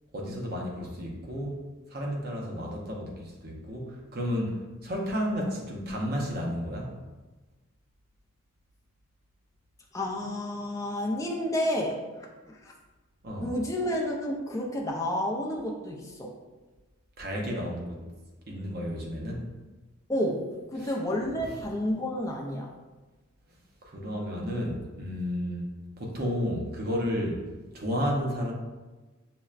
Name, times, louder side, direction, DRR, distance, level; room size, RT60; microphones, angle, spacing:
voice 1, 0.1-4.6 4.8-6.9 13.2-13.5 17.2-18.0 18.5-19.4 20.8-20.9 23.9-25.6 26.0-27.4 27.7-28.5, equal, 45° right, -1 dB, 0.7 m, -32 dB
voice 2, 9.9-12.0 12.5-12.7 13.4-16.3 20.1-22.7, left 1 dB, 15° left, -1 dB, 0.4 m, -30 dB
5.7 x 2.1 x 2.4 m, 1.2 s
head